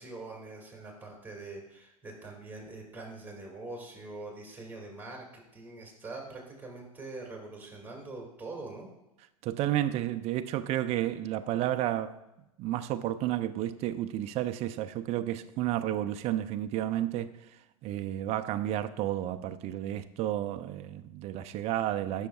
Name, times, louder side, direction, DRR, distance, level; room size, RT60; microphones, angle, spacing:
voice 1, 0.0-8.9, right 2 dB, 10° right, 2.2 m, -43 dB
voice 2, 9.4-12.2 12.6-22.3, right 13 dB, 35° right, 0.5 m, -31 dB
13.0 x 6.3 x 2.3 m
hypercardioid pair, 105°, 18 cm